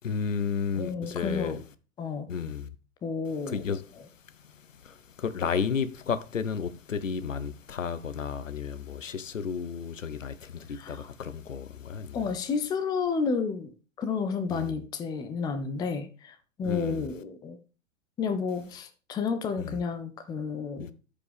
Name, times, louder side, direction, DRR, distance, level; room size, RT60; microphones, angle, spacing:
voice 1, 0.0-1.6 2.3-2.7 3.5-3.8 4.8-12.2 14.5-14.7 16.6-17.1 19.6-19.8 20.8-20.9, left 6 dB, 70° left, 1.0 m, -32 dB
voice 2, 0.8-1.6 2.0-2.3 3.0-3.8 10.7-11.1 12.1-17.6 18.2-20.9, left 5 dB, 10° left, 0.6 m, -31 dB
13.5 x 5.2 x 3.5 m
figure-of-eight pair, 105°, 39 cm